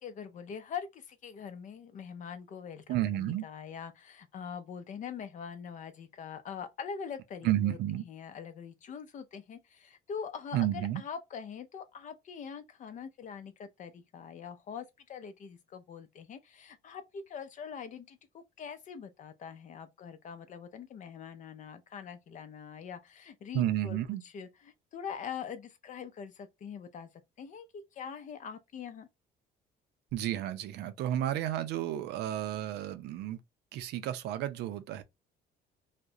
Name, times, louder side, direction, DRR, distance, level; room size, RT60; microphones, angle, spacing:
voice 1, 0.0-7.8 8.0-18.2 18.6-24.0 24.3-27.1 27.4-29.1, left 7 dB, 50° left, 0.6 m, -43 dB
voice 2, 2.9-3.4 7.4-8.0 10.5-11.0 23.5-24.2 30.1-33.4 33.7-35.0, right 12 dB, 80° right, 0.5 m, -31 dB
2.4 x 2.1 x 2.6 m
cardioid pair, 110°, 17 cm